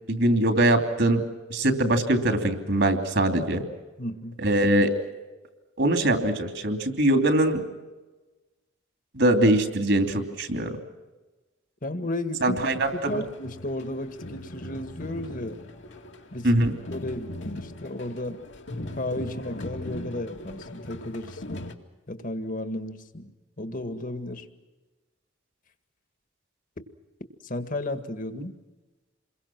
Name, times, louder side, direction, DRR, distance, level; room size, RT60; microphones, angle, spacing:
voice 1, 0.1-1.2 1.5-3.6 4.4-4.9 5.8-7.6 9.1-10.7 12.4-13.1 16.4-16.7, right 1 dB, 65° right, 6 dB, 3.0 m, -22 dB
voice 2, 4.0-4.4 11.8-12.6 12.9-15.6 16.3-16.5 16.9-18.4 18.7-21.6 22.1-23.3 23.6-24.5 27.4-28.5, left 1 dB, 45° left, 9 dB, 1.8 m, -33 dB
sound 1, 12.6-21.7, left 1 dB, 70° left, 2.2 m, -40 dB
28.0 x 22.5 x 6.1 m, 1.2 s
head